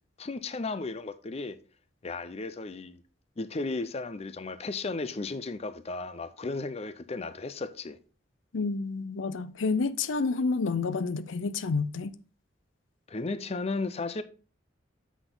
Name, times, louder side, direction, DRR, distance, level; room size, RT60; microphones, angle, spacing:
voice 1, 0.2-1.6 2.0-3.0 3.4-8.0 13.1-14.2, left 3 dB, 35° left, 0.5 m, -34 dB
voice 2, 8.5-12.1, left 4 dB, 90° left, 0.5 m, -29 dB
8.0 x 6.0 x 3.8 m
head